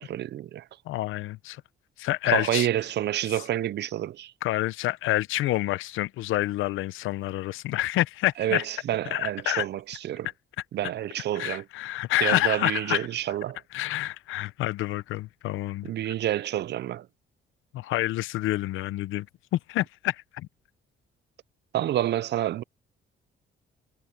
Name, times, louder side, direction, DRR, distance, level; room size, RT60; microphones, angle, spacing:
voice 1, 0.0-0.7 2.3-4.3 8.4-10.3 10.7-11.6 12.2-13.6 15.8-17.1 21.7-22.6, right 12 dB, 60° right, 0.5 m, -28 dB
voice 2, 0.9-1.6 2.0-2.7 4.4-8.6 9.1-9.6 11.4-13.1 13.7-16.1 17.7-19.3 19.5-20.5, left 16 dB, 85° left, 0.7 m, -28 dB
cardioid pair, 90°, 20 cm